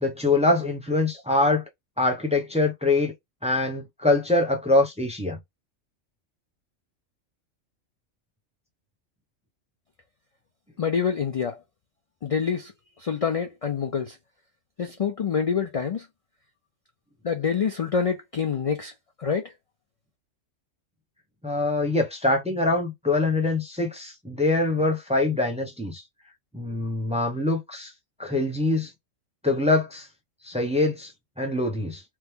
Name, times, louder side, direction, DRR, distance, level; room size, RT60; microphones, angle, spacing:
voice 1, 0.0-1.7 2.0-3.1 3.4-5.4 21.4-26.0 26.5-27.9 28.2-28.9 29.4-30.1 30.4-31.1 31.4-32.0, left 2 dB, 10° right, 0.5 m, -24 dB
voice 2, 10.8-11.6 12.2-12.7 13.0-14.2 14.8-16.1 17.2-18.9 19.2-19.5, left 6 dB, 60° left, 0.3 m, -26 dB
3.1 x 2.0 x 3.5 m
omnidirectional pair, 1.3 m